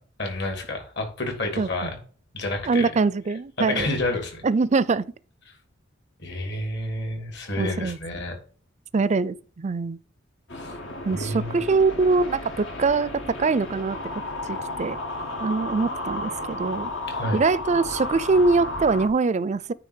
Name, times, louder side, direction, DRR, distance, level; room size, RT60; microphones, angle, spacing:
voice 1, 0.2-1.9 2.3-2.9 3.6-4.4 6.2-8.3 10.5-10.7 11.0-11.6 17.1-17.4, left 2 dB, 60° left, 2.9 m, -29 dB
voice 2, 1.6-1.9 2.7-4.0 4.4-5.1 7.6-8.0 8.9-10.0 11.0-14.0 14.5-15.0 15.4-16.9 17.3-19.7, right 4 dB, 35° right, 0.4 m, -23 dB
sound 1, 10.5-19.1, left 2 dB, 80° left, 2.1 m, -33 dB
9.4 x 3.4 x 6.5 m
head